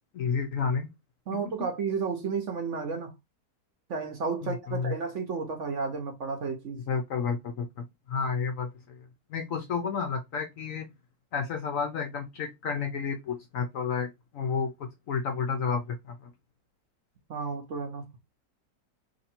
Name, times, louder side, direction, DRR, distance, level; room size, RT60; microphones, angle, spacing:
voice 1, 0.1-0.9 4.4-4.9 6.9-9.0 9.3-10.9 11.3-16.3, left 5 dB, 65° left, 0.8 m, -31 dB
voice 2, 1.3-3.1 3.9-6.8 17.3-18.1, right 5 dB, 55° right, 0.9 m, -32 dB
2.9 x 2.7 x 4.2 m
omnidirectional pair, 1.8 m